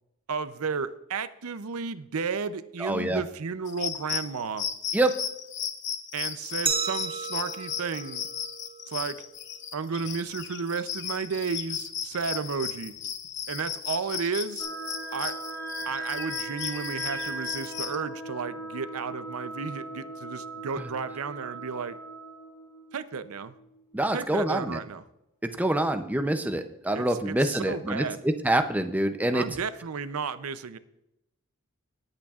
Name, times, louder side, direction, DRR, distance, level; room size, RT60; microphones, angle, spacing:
voice 1, 0.3-4.7 6.1-8.2 8.9-9.2 9.7-12.9 13.5-14.7 15.1-15.3 15.8-21.9 22.9-23.5 24.1-25.0 26.9-28.2 29.3-30.8, right 5 dB, 70° right, 13 dB, 0.6 m, -33 dB
voice 2, 2.8-3.2 4.9-5.1 20.8-20.9 23.9-24.8 25.4-29.4, right 1 dB, 5° right, 7 dB, 0.5 m, -26 dB
sound 1, 3.7-18.0, left 9 dB, 50° left, 0.8 m, -35 dB
Glass, 6.7-9.4, right 5 dB, 25° right, 1.5 m, -33 dB
sound 2, 14.6-24.1, right 2 dB, 15° left, 3.1 m, -39 dB
18.5 x 8.8 x 2.4 m, 0.85 s
head